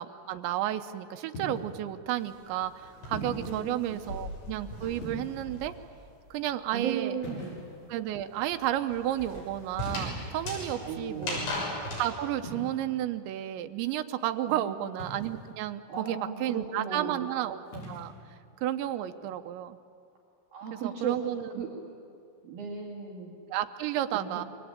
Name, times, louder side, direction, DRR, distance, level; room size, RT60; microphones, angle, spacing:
voice 1, 0.0-5.7 6.3-7.2 7.9-11.4 12.0-17.6 17.9-18.1 18.6-19.8 20.7-21.6 23.5-24.4, right 12 dB, 80° right, 8 dB, 2.8 m, -32 dB
sound 1, 1.3-1.8 3.1-3.5 5.0-5.6 7.2-7.9 9.8-10.4 12.4-12.7 15.0-15.5 17.6-18.1, equal, 50° left, 7.9 m, -40 dB
sound 2, 2.2-5.9 6.2-12.1, left 1 dB, 70° left, 8.9 m, -39 dB
voice 2, 3.4-4.0 6.7-7.6 10.7-11.6 14.5-14.7 15.9-17.3 20.5-21.3 21.6-22.0 22.4-23.3 24.1-24.5, right 6 dB, 50° right, -3 dB, 3.8 m, -36 dB
28.5 x 23.5 x 8.9 m, 2.4 s
omnidirectional pair, 5.7 m